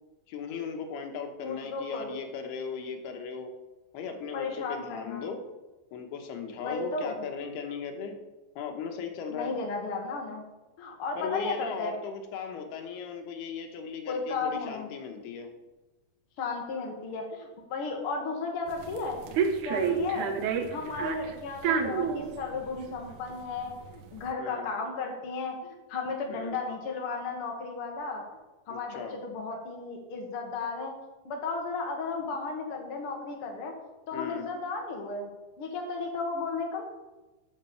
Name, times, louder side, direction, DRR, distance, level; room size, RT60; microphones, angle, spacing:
voice 1, 0.3-3.5 3.9-5.4 5.9-8.2 8.6-9.5 11.2-15.5 19.7-20.0 24.4-24.7 26.3-26.6 28.7-29.2 34.1-34.5, left 6 dB, 85° left, 5 dB, 3.1 m, -37 dB
voice 2, 1.4-2.1 4.3-5.3 6.6-7.1 9.3-10.4 10.8-11.9 14.1-14.9 16.4-20.3 20.7-28.2 28.7-30.9 31.2-33.7 34.1-35.3 35.6-36.9, left 4 dB, 55° left, 1 dB, 1.5 m, -34 dB
sound 1, 18.7-24.2, right 6 dB, 75° right, 1.9 m, -30 dB
8.6 x 6.7 x 6.9 m, 1.1 s
omnidirectional pair, 4.5 m